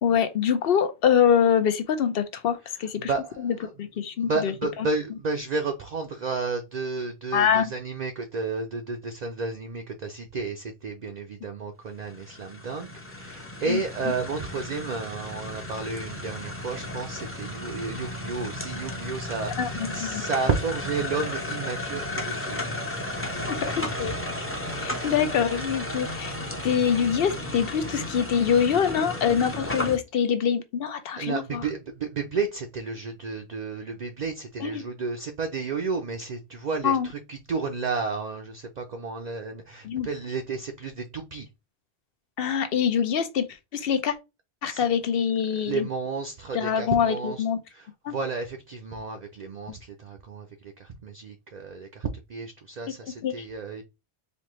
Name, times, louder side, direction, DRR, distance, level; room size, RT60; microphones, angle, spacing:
voice 1, 0.0-3.1 3.4-4.5 7.3-7.7 13.7-13.8 19.6-20.2 23.5-24.1 24.8-26.3 26.6-31.6 34.6-34.8 36.8-37.1 39.8-40.1 42.4-43.5 43.7-44.2 44.6-45.9 46.5-47.6 48.0-48.1 53.2-53.3, left 7 dB, 65° left, 0.8 m, -24 dB
voice 2, 3.0-3.7 4.2-22.6 23.0-24.2 24.9-25.2 31.2-41.5 44.6-44.9 45.6-47.4 47.7-53.8, right 4 dB, 50° right, 0.6 m, -32 dB
sound 1, 12.0-30.0, left 1 dB, 15° left, 0.7 m, -34 dB
4.3 x 2.8 x 3.1 m
omnidirectional pair, 1.1 m